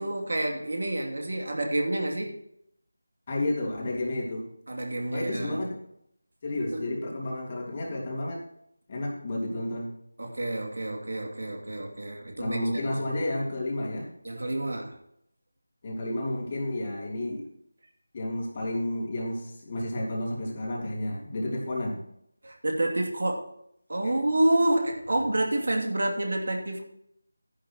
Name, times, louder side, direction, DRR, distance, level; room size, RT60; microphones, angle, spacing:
voice 1, 0.0-2.3 4.7-5.6 6.7-6.8 10.2-12.6 12.9-13.0 14.2-15.0 22.4-23.5 23.9-26.8, right 1 dB, 65° right, 1 dB, 2.7 m, -28 dB
voice 2, 3.3-4.5 5.1-5.7 6.4-8.4 8.9-9.9 12.4-14.1 15.8-17.5 18.1-22.0 24.0-24.1, left 1 dB, 30° left, -2 dB, 3.1 m, -31 dB
12.5 x 10.5 x 3.0 m, 0.73 s
figure-of-eight pair, 165°, 0 cm